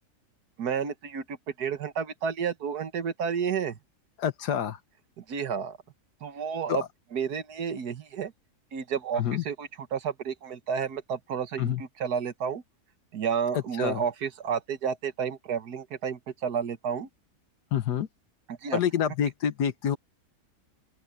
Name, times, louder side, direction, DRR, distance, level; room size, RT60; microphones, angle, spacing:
voice 1, 0.6-3.8 5.2-5.8 6.2-6.8 7.1-8.3 8.7-12.6 13.1-17.1 18.5-18.8, right 7 dB, 75° right, 1.8 m, -31 dB
voice 2, 4.2-4.8 6.7-6.9 9.1-9.4 11.6-11.8 13.5-14.0 17.7-18.1 18.7-20.0, left 9 dB, 90° left, 1.6 m, -27 dB
open air
omnidirectional pair, 1.7 m